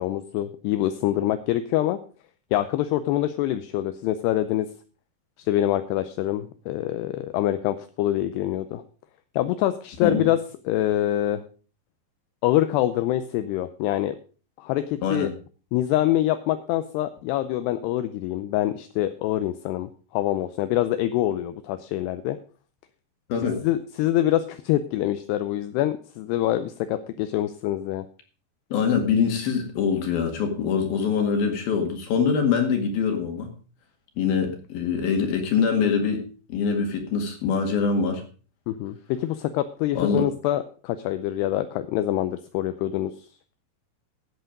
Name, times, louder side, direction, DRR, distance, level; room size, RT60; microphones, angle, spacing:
voice 1, 0.0-2.0 2.5-4.7 5.4-8.8 9.3-10.4 10.7-11.4 12.4-14.2 14.6-15.3 15.7-22.4 23.6-28.1 38.7-43.1, left 13 dB, 80° left, 10 dB, 2.7 m, -25 dB
voice 2, 23.3-23.6 28.7-33.5 34.2-36.2 36.5-38.2 39.9-40.3, left 6 dB, 65° left, 4 dB, 3.6 m, -24 dB
13.5 x 8.2 x 5.1 m, 0.38 s
omnidirectional pair, 4.9 m